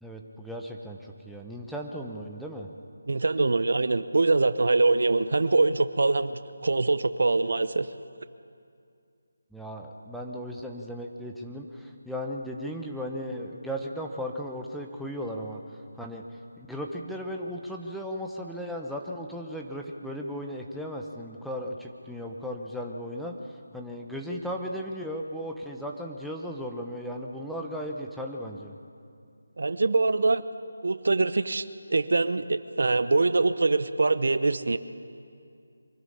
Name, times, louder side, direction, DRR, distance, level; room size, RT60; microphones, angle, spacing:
voice 1, 0.0-2.7 9.5-15.6 16.0-16.2 16.6-28.8, equal, ahead, 0 dB, 1.0 m, -36 dB
voice 2, 3.1-7.9 29.6-30.4 30.8-31.6 31.9-34.8, right 3 dB, 65° right, 13 dB, 0.8 m, -24 dB
24.0 x 12.5 x 9.9 m, 2.4 s
figure-of-eight pair, 160°, 0 cm